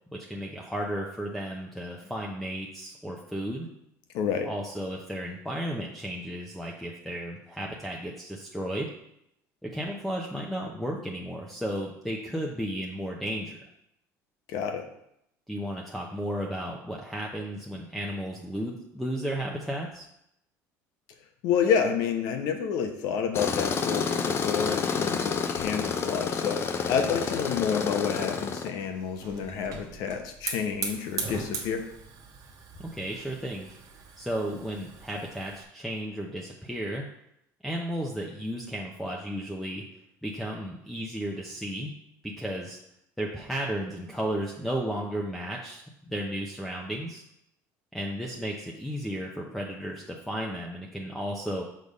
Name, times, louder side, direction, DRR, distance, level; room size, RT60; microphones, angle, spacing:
voice 1, 0.1-3.7 4.4-8.9 9.6-13.6 15.5-20.1 32.8-33.7 34.2-37.0 37.6-39.8 40.2-41.9 42.2-42.8 43.2-47.2 47.9-51.6, equal, ahead, -2 dB, 0.8 m, -34 dB
voice 2, 4.1-4.5 14.5-14.8 21.4-31.8, left 7 dB, 75° left, 5 dB, 0.9 m, -29 dB
Tools, 23.3-28.7, left 6 dB, 40° left, 0.6 m, -29 dB
Hiss / Fire, 28.8-35.6, right 5 dB, 55° right, 1.2 m, -40 dB
6.5 x 3.5 x 5.3 m, 0.77 s
cardioid pair, 110°, 7 cm